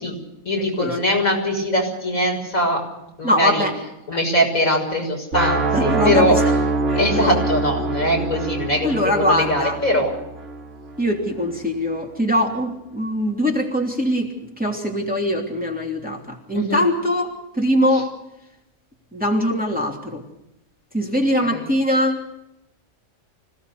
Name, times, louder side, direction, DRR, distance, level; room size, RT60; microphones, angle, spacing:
voice 1, 0.4-2.8 3.2-3.7 4.1-6.4 7.0-10.1 16.5-16.8 21.4-21.6, left 1 dB, 75° left, 1 dB, 6.8 m, -21 dB
voice 2, 3.2-3.7 4.1-4.2 5.7-6.4 6.9-7.4 8.8-9.8 11.0-14.3 14.6-18.1 19.1-20.2 20.9-22.2, equal, 5° right, 0 dB, 3.0 m, -22 dB
sound 1, 5.3-11.2, right 3 dB, 60° right, 2.7 m, -24 dB
26.0 x 17.5 x 6.9 m, 0.86 s
omnidirectional pair, 1.4 m